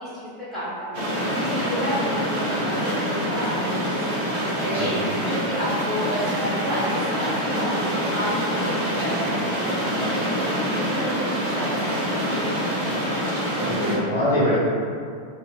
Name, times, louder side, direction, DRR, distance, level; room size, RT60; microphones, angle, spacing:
voice 1, 0.0-11.9, equal, ahead, -15 dB, 1.4 m, -31 dB
sound 1, 0.9-14.0, equal, 50° right, 0.7 m, -25 dB
voice 2, 13.5-14.6, left 1 dB, 70° left, -10 dB, 0.6 m, -23 dB
2.6 x 2.1 x 2.2 m, 2.3 s
figure-of-eight pair, 90°, 0 cm